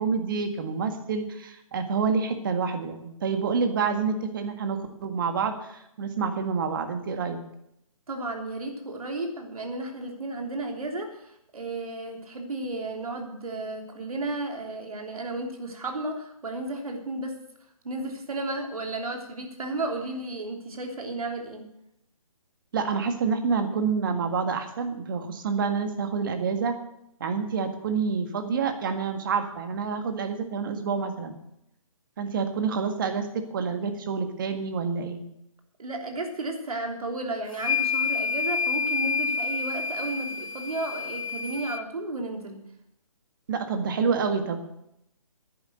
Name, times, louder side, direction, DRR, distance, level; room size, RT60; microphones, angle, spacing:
voice 1, 0.0-7.4 22.7-26.7 27.2-31.3 32.2-35.2 43.5-44.6, right 5 dB, 35° right, 7 dB, 1.8 m, -28 dB
voice 2, 8.1-17.4 17.8-21.7 35.8-42.6, right 2 dB, 80° right, 3 dB, 3.3 m, -33 dB
sound 1, 37.5-41.8, left 5 dB, 70° left, 0.7 m, -28 dB
10.5 x 9.8 x 7.9 m, 0.79 s
hypercardioid pair, 160°, 18 cm